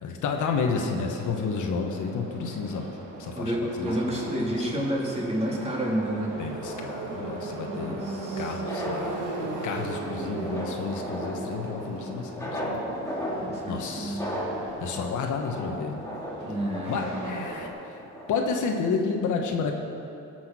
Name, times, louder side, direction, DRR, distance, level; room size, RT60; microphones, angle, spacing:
voice 1, 0.0-2.9 3.2-3.5 3.8-4.7 6.4-9.2 9.6-12.7 13.7-14.2 14.8-16.0 16.9-18.0 18.3-19.7, left 5 dB, 80° left, 3 dB, 1.4 m, -31 dB
Subway metro underground, 0.6-17.7, right 3 dB, 80° right, 2.1 m, -38 dB
voice 2, 3.3-6.3 7.7-8.6 13.4-14.3 16.4-16.9, equal, 20° right, -3 dB, 3.0 m, -30 dB
sound 1, 6.6-18.4, equal, 10° left, 2.4 m, -37 dB
17.0 x 6.2 x 6.1 m, 2.7 s
cardioid pair, 90°, 30 cm